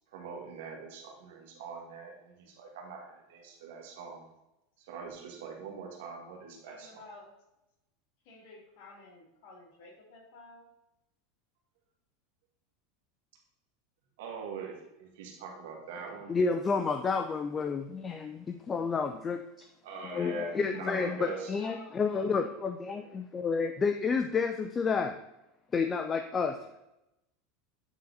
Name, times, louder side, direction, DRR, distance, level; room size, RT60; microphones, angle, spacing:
voice 1, 0.1-4.2 4.8-7.0 14.2-16.3 19.8-21.5, right 5 dB, 75° right, 1 dB, 1.9 m, -43 dB
voice 2, 6.5-7.3 8.2-10.7 17.9-18.3 20.0-20.9 21.2-22.5 22.8-23.1, left 2 dB, 60° left, -1 dB, 2.5 m, -53 dB
voice 3, 16.3-25.2 25.7-26.6, left 5 dB, 20° left, 7 dB, 0.4 m, -30 dB
8.9 x 4.0 x 4.1 m, 0.90 s
supercardioid pair, 135°, 0 cm